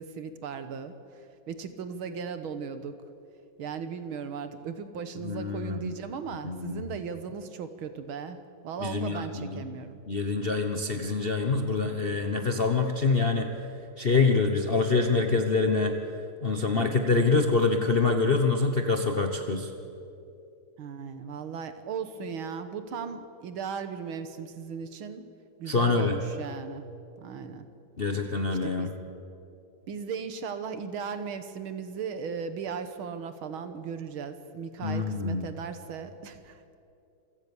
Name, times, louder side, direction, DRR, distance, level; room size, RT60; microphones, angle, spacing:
voice 1, 0.0-2.9 3.6-8.4 8.6-10.0 16.7-17.2 20.8-25.2 25.6-26.8 27.2-27.7 28.1-28.3 28.6-29.0 29.9-36.8, right 6 dB, 70° right, 10 dB, 2.0 m, -37 dB
voice 2, 5.2-5.9 6.4-6.9 8.8-9.6 10.1-13.5 14.0-16.0 16.4-19.7 25.7-26.2 28.0-28.9 34.8-35.5, left 4 dB, 40° left, 5 dB, 0.8 m, -25 dB
27.0 x 16.5 x 7.1 m, 2.7 s
omnidirectional pair, 2.4 m